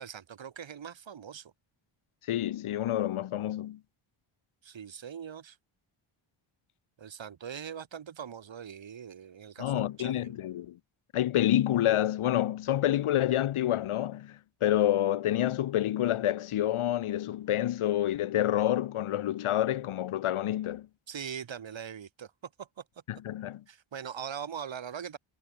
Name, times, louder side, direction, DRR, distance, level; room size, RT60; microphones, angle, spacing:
voice 1, 0.0-1.5 4.6-5.6 7.0-10.3 21.1-22.3 22.6-22.8 23.7-25.2, right 8 dB, 60° right, 5.1 m, -41 dB
voice 2, 2.3-3.8 9.6-10.8 11.1-20.9 23.1-23.6, left 12 dB, 80° left, 1.1 m, -28 dB
wide cardioid pair, 120°, 50 cm